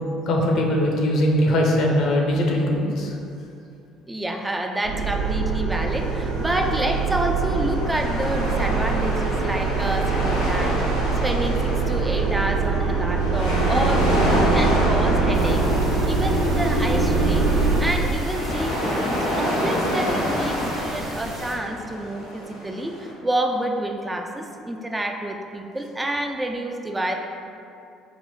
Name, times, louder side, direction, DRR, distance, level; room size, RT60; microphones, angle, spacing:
voice 1, 0.3-3.2, left 1 dB, 60° left, 0 dB, 0.6 m, -21 dB
voice 2, 4.1-17.5 17.8-27.2, right 1 dB, 15° right, 3 dB, 0.3 m, -28 dB
sound 1, 4.8-17.8, right 4 dB, 85° right, 0.6 m, -23 dB
sound 2, 5.9-23.1, equal, 85° left, 0.9 m, -28 dB
sound 3, 15.3-21.6, right 1 dB, 50° right, 0.9 m, -35 dB
3.8 x 2.0 x 4.2 m, 2.6 s
hypercardioid pair, 55°, 0 cm